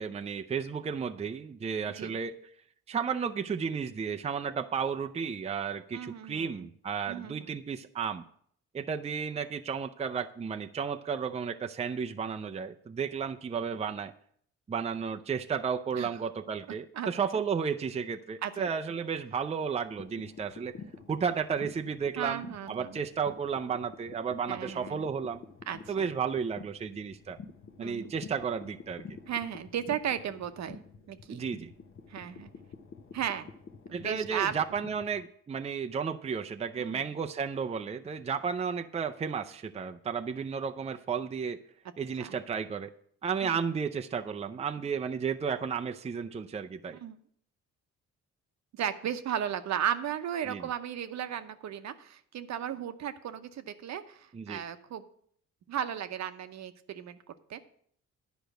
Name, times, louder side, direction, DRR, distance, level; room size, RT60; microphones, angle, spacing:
voice 1, 0.0-2.4 2.9-8.2 8.7-14.1 14.7-20.8 21.1-25.4 25.9-27.4 27.8-29.0 31.3-31.7 33.9-41.6 42.0-42.9 43.2-47.0 50.5-50.7 54.3-54.6, right 6 dB, 20° right, 7 dB, 0.5 m, -33 dB
voice 2, 5.9-6.7 7.1-7.6 16.0-16.1 16.9-17.1 18.4-18.7 22.2-23.0 24.5-25.1 25.7-26.1 27.8-28.1 29.3-30.8 31.1-31.4 32.1-32.5 33.1-33.5 33.9-34.6 36.8-37.0 42.2-42.4 43.4-43.6 46.9-47.2 48.7-55.0 55.7-57.2 57.5-57.6, right 9 dB, 65° right, 10 dB, 0.9 m, -35 dB
sound 1, 20.0-35.2, left 5 dB, 45° left, 1.0 m, -49 dB
10.5 x 5.2 x 7.9 m, 0.63 s
cardioid pair, 90°, 30 cm